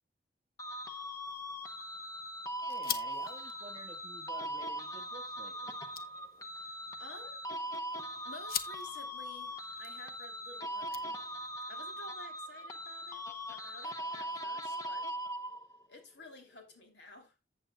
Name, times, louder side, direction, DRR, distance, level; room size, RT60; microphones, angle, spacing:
sound 1, 0.6-15.8, equal, 20° left, 0.9 m, -40 dB
sound 2, 1.2-11.6, left 9 dB, 55° left, 0.9 m, -46 dB
voice 1, 2.7-5.8, right 1 dB, 35° right, 1.7 m, -51 dB
voice 2, 6.5-7.5 7.9-11.2 11.7-13.2 13.5-15.1 15.9-17.3, left 2 dB, 75° left, 2.9 m, -53 dB
14.5 x 7.8 x 2.3 m
head